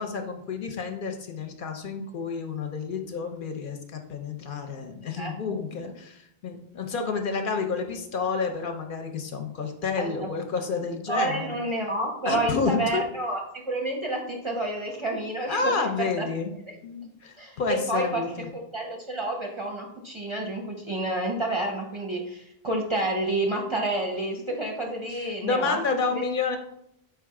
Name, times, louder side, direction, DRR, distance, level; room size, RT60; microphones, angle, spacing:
voice 1, 0.0-11.6 12.2-13.0 15.5-16.5 16.8-18.5 25.1-26.6, left 4 dB, 60° left, 5 dB, 0.7 m, -30 dB
voice 2, 10.0-10.3 11.1-16.3 16.7-16.8 17.4-18.3 18.5-26.2, right 1 dB, 40° right, 0 dB, 0.5 m, -29 dB
4.8 x 2.3 x 4.6 m, 0.76 s
omnidirectional pair, 1.0 m